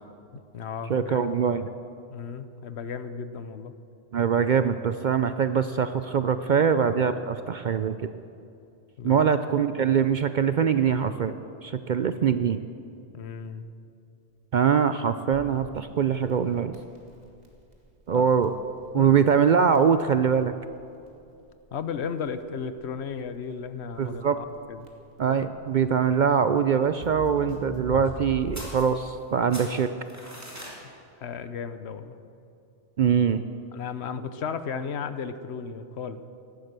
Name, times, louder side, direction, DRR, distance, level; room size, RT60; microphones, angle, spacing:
voice 1, 0.3-1.3 2.1-3.7 9.0-9.3 13.1-13.7 18.1-18.3 19.0-19.1 21.7-24.9 31.2-32.2 33.7-36.3, left 6 dB, 70° left, 11 dB, 1.1 m, -35 dB
voice 2, 0.9-1.7 4.1-8.0 9.0-11.3 11.6-12.6 14.5-16.7 18.1-18.5 18.9-20.5 24.0-24.4 25.2-29.9 33.0-33.4, right 7 dB, 55° right, 10 dB, 0.5 m, -23 dB
Crackle, 15.5-28.9, equal, 35° right, 2.1 m, -43 dB
sound 1, 28.5-29.3 29.5-30.8, equal, 15° right, 3.0 m, -41 dB
17.0 x 11.5 x 6.7 m, 2.6 s
omnidirectional pair, 1.2 m